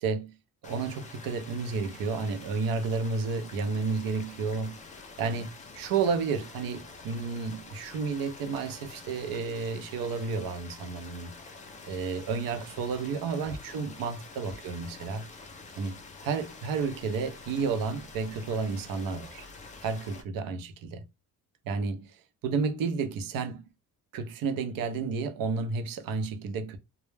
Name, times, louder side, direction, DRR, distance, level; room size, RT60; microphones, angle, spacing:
voice 1, 0.0-0.4 0.6-4.8 5.2-5.5 5.7-11.3 11.9-15.3 15.8-19.5 19.8-21.0 21.7-23.6 24.1-26.8, right 5 dB, 80° right, 0.6 m, -31 dB
sound 1, 0.6-20.2, left 3 dB, 25° left, 0.3 m, -47 dB
2.2 x 2.0 x 3.1 m
cardioid pair, 170°, 34 cm